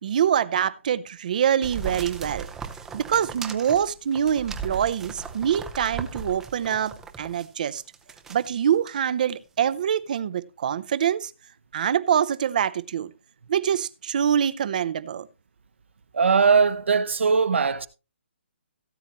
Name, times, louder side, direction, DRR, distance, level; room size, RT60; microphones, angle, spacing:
voice 1, 0.0-2.5 2.9-7.8 8.3-11.3 11.7-13.1 13.5-15.3, right 9 dB, 40° right, 0.7 m, -25 dB
sound 1, 1.6-7.5 7.9-8.5 8.9-9.0, right 6 dB, 5° right, 0.7 m, -37 dB
voice 2, 16.1-17.9, right 5 dB, 70° right, 1.2 m, -20 dB
17.0 x 8.1 x 3.0 m
hypercardioid pair, 165°, 7 cm